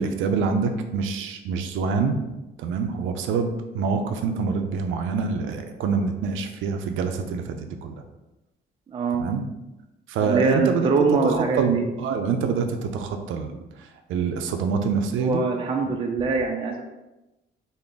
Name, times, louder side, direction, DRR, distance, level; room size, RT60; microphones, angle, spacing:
voice 1, 0.0-2.2 2.6-7.9 9.2-9.4 10.1-10.9 11.3-13.6 14.1-15.4 15.8-15.9, right 5 dB, 85° right, 5 dB, 0.5 m, -26 dB
voice 2, 8.9-9.3 10.2-11.8 15.2-16.8, right 4 dB, 25° right, 1 dB, 0.4 m, -23 dB
3.4 x 2.1 x 3.8 m, 1.0 s
cardioid pair, 90°, 20 cm